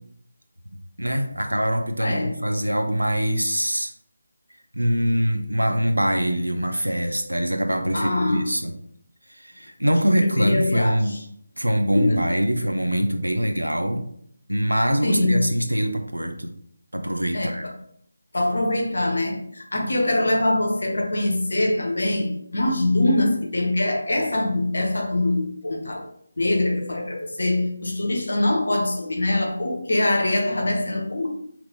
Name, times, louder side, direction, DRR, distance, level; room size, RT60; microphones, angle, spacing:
voice 1, 1.0-3.9 4.7-8.7 9.4-11.2 11.6-14.0 14.5-16.6 16.9-17.7, equal, 80° right, 5 dB, 0.6 m, -23 dB
voice 2, 2.0-2.3 7.9-8.5 10.4-11.2 11.9-12.2 15.0-15.5 17.3-17.5 18.3-26.0 26.4-31.3, left 1 dB, 55° left, 2 dB, 0.9 m, -23 dB
4.0 x 2.9 x 3.2 m, 0.67 s
figure-of-eight pair, 160°, 0 cm